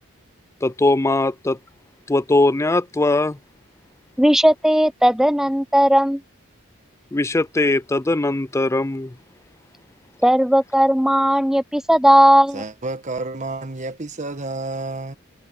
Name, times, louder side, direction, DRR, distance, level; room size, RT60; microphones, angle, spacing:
voice 1, 0.6-1.6 2.1-3.4 7.1-9.1, left 2 dB, 15° left, 0.4 m, -20 dB
voice 2, 4.2-6.2 10.2-12.6, equal, ahead, 0.8 m, -16 dB
voice 3, 12.5-15.1, right 2 dB, 35° right, 1.5 m, -30 dB
head